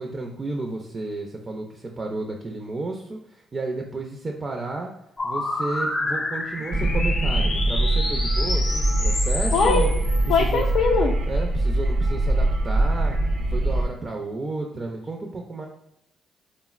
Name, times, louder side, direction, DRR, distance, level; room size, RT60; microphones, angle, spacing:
voice 1, 0.0-4.9 5.2-9.9 10.4-10.7 11.3-13.2 13.5-15.7, right 3 dB, 30° right, 2 dB, 0.4 m, -32 dB
sound 1, 5.2-10.7, left 2 dB, 35° left, 0.6 m, -29 dB
sound 2, 6.7-13.9, right 1 dB, 90° right, 0.6 m, -23 dB
voice 2, 9.5-9.9 10.3-11.1, left 4 dB, 70° left, -1 dB, 0.3 m, -21 dB
3.7 x 2.0 x 2.3 m, 0.86 s
cardioid pair, 90°, 0 cm